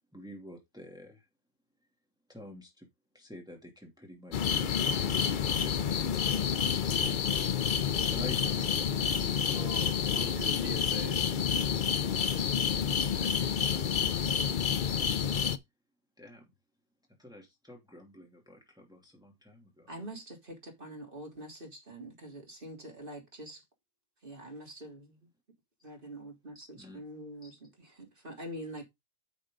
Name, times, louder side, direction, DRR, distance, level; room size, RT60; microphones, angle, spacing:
voice 1, 0.1-1.3 2.3-2.9 3.1-9.8 13.2-14.6 16.2-16.5 17.2-19.9 25.8-25.9 26.7-27.0 27.4-27.5, equal, 5° right, 2.7 m, -49 dB
sound 1, 4.3-15.6, left 7 dB, 50° left, 0.6 m, -29 dB
voice 2, 9.5-11.7, right 3 dB, 80° right, 2.1 m, -44 dB
voice 3, 19.9-23.6 24.2-25.3 25.8-28.9, right 1 dB, 40° right, 3.5 m, -45 dB
9.4 x 6.4 x 3.8 m
omnidirectional pair, 1.5 m